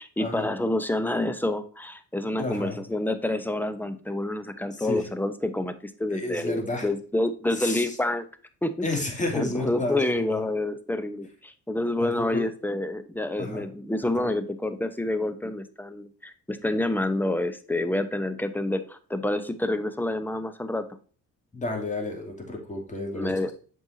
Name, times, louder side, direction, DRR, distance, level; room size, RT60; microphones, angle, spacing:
voice 1, 0.0-8.2 8.6-8.7 9.3-20.8 23.1-23.5, left 1 dB, 5° left, 10 dB, 0.9 m, -28 dB
voice 2, 2.4-2.8 4.7-5.1 6.1-6.9 7.5-7.8 8.8-10.0 10.3-10.4 12.0-12.4 13.4-13.7 14.0-14.3 21.5-23.3, left 2 dB, 25° left, 1 dB, 2.9 m, -31 dB
7.9 x 5.5 x 2.7 m, 0.41 s
cardioid pair, 90°, 30 cm